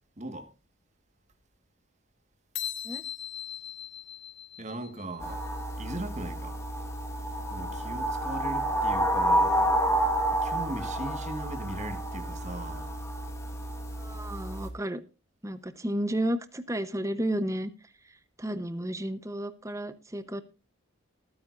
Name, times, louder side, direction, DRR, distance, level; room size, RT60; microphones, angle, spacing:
voice 1, 0.2-0.5 4.6-5.4 5.8-6.5 7.5-9.7 10.4-12.9, right 1 dB, 35° right, 1.6 m, -38 dB
sound 1, 2.6-5.2, left 10 dB, 55° left, 1.9 m, -39 dB
sound 2, 5.2-14.7, right 1 dB, 15° left, 2.0 m, -29 dB
voice 2, 14.0-15.0 15.4-17.7 18.4-20.4, right 1 dB, 15° right, 0.9 m, -32 dB
19.5 x 9.5 x 2.5 m
head